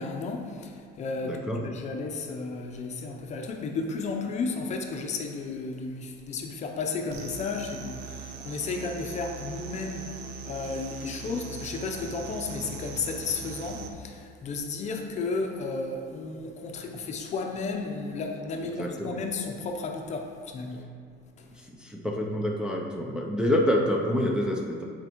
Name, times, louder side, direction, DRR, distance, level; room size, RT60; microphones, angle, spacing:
voice 1, 0.0-20.8 21.4-21.5, left 4 dB, 40° left, 3 dB, 0.6 m, -33 dB
voice 2, 1.2-1.6 18.8-19.2 21.7-24.8, left 1 dB, 5° right, -2 dB, 0.5 m, -27 dB
sound 1, 7.1-13.9, right 4 dB, 65° right, 0.7 m, -40 dB
9.3 x 4.4 x 3.0 m, 2.4 s
cardioid pair, 145°, 19 cm